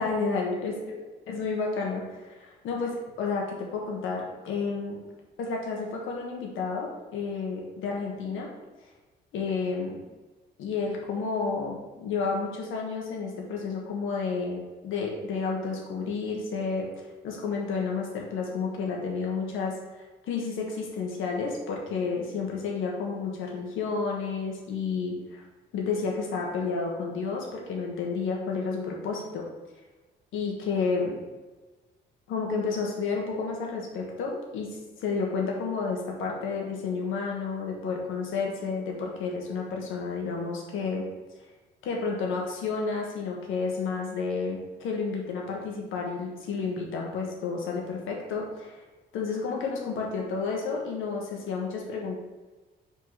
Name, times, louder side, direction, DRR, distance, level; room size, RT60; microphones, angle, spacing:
voice 1, 0.0-5.0 5.4-8.5 9.3-10.0 10.6-16.9 17.2-19.8 20.2-25.4 25.7-29.5 30.3-31.2 32.3-41.1 41.8-48.8 49.1-52.2, left 4 dB, 85° left, 0 dB, 1.7 m, -31 dB
4.8 x 4.4 x 5.9 m, 1.2 s
cardioid pair, 90°, 20 cm